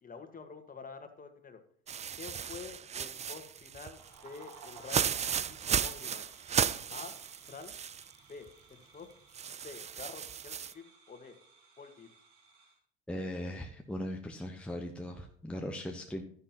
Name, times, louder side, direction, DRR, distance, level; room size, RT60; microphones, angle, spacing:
voice 1, 0.0-1.6 2.2-5.1 5.3-6.2 6.9-7.1 7.5-7.7 8.3-9.1 9.6-11.4 11.8-12.1, left 5 dB, 25° left, 7 dB, 1.7 m, -48 dB
sound 1, 1.9-8.1 8.5-8.6 9.3-10.7, right 8 dB, 20° right, 0.4 m, -35 dB
sound 2, 3.7-12.8, right 4 dB, 60° right, 4.7 m, -58 dB
voice 2, 13.1-16.2, equal, 5° left, 2 dB, 1.1 m, -39 dB
12.5 x 10.0 x 3.0 m, 0.62 s
hypercardioid pair, 75°, 34 cm